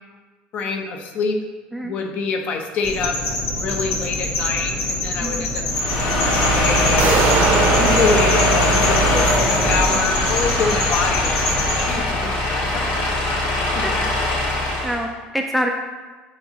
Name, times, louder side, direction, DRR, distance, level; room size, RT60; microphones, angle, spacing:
voice 1, 0.5-1.4 1.8-3.2 3.5-7.2 7.8-13.3 13.7-14.0, left 4 dB, 40° left, 4 dB, 0.7 m, -26 dB
sound 1, 2.8-11.8, left 2 dB, 65° left, 2.0 m, -25 dB
voice 2, 5.2-5.5 13.8-14.1 14.8-15.7, equal, ahead, 1 dB, 0.3 m, -26 dB
sound 2, 5.7-15.0, left 1 dB, 85° left, 2.0 m, -20 dB
sound 3, 7.0-9.8, right 6 dB, 50° right, 0.6 m, -23 dB
7.9 x 5.9 x 2.9 m, 1.3 s
cardioid pair, 175°, 4 cm